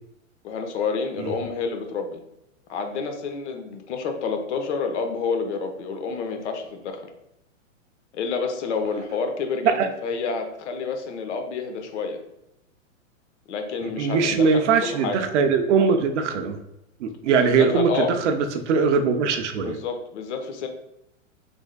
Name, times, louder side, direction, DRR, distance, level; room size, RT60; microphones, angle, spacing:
voice 1, 0.4-2.2 2.7-7.0 8.1-12.2 13.5-15.3 17.4-18.1 19.6-20.7, left 5 dB, 60° left, 6 dB, 0.8 m, -29 dB
voice 2, 13.8-16.6 17.0-19.8, right 5 dB, 65° right, 6 dB, 0.6 m, -21 dB
3.5 x 3.2 x 2.2 m, 0.84 s
hypercardioid pair, 135°, 39 cm